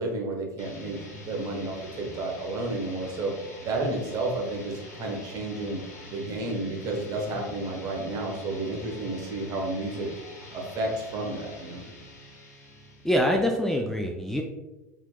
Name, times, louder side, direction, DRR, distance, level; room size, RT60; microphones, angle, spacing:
voice 1, 0.0-3.3 3.6-5.8 6.1-10.1 10.5-11.8, right 2 dB, 45° right, 1 dB, 1.1 m, -31 dB
sound 1, 0.6-13.4, left 1 dB, 80° left, 1.2 m, -45 dB
voice 2, 13.0-14.4, equal, 5° left, 1 dB, 0.4 m, -24 dB
4.4 x 3.6 x 2.2 m, 1.1 s
hypercardioid pair, 85°, 9 cm